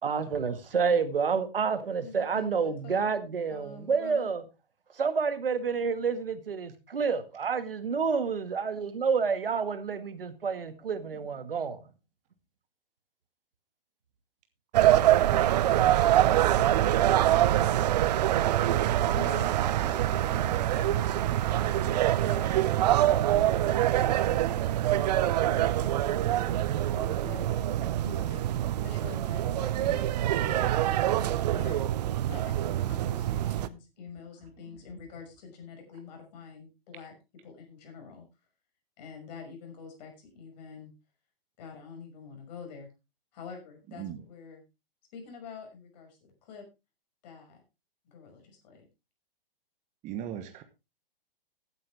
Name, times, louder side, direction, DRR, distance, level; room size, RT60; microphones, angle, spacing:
voice 1, 0.0-4.4 4.9-11.8, right 5 dB, 70° right, 1.9 m, -29 dB
voice 2, 2.0-3.0 3.5-4.3 19.1-21.7 22.1-37.1 37.4-38.3 39.0-40.9 41.6-42.9 43.3-44.6 45.1-46.7 47.2-47.6 48.0-48.8, left 5 dB, 45° left, 5.9 m, -47 dB
sound 1, 14.7-33.7, right 13 dB, 45° right, 0.8 m, -25 dB
voice 3, 15.2-15.6 44.0-44.2 50.0-50.6, right 10 dB, 25° right, 1.3 m, -38 dB
15.0 x 9.5 x 3.4 m
figure-of-eight pair, 115°, 29 cm